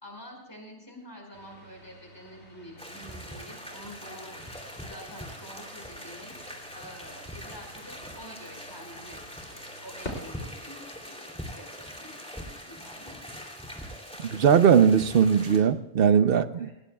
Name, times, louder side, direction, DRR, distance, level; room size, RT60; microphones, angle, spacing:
voice 1, 0.0-4.4 4.8-6.3 6.7-9.2 9.5-13.2 16.5-16.7, equal, 20° left, 0 dB, 4.9 m, -47 dB
sound 1, 1.3-10.3, left 1 dB, 75° left, 3.4 m, -48 dB
sound 2, 2.8-15.6, equal, 5° left, 2.9 m, -42 dB
voice 2, 14.3-16.7, right 7 dB, 60° right, 12 dB, 0.8 m, -20 dB
20.0 x 18.5 x 2.3 m, 0.97 s
omnidirectional pair, 1.2 m